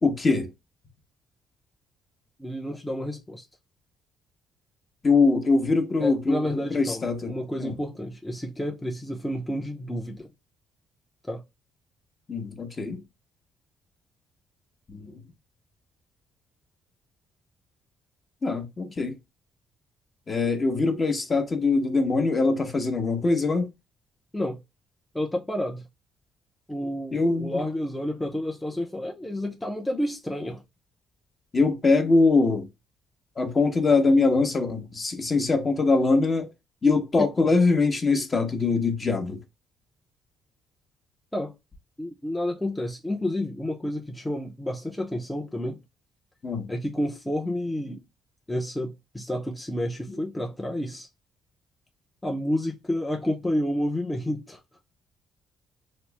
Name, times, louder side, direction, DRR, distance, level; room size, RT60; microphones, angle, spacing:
voice 1, 0.0-0.5 5.0-7.3 7.6-7.8 12.3-13.0 14.9-15.1 18.4-19.1 20.3-23.7 27.1-27.6 31.5-32.7 33.4-36.5 36.8-39.4 46.4-46.7 50.1-50.2, left 3 dB, 30° left, 0.8 m, -23 dB
voice 2, 2.4-3.5 6.0-10.3 11.3-11.4 24.3-24.6 25.1-25.8 26.7-30.6 41.3-41.5 42.0-45.8 46.7-48.0 48.5-51.1 52.2-54.6, left 1 dB, 10° left, 0.6 m, -30 dB
3.0 x 2.0 x 3.2 m
cardioid pair, 90°, 0 cm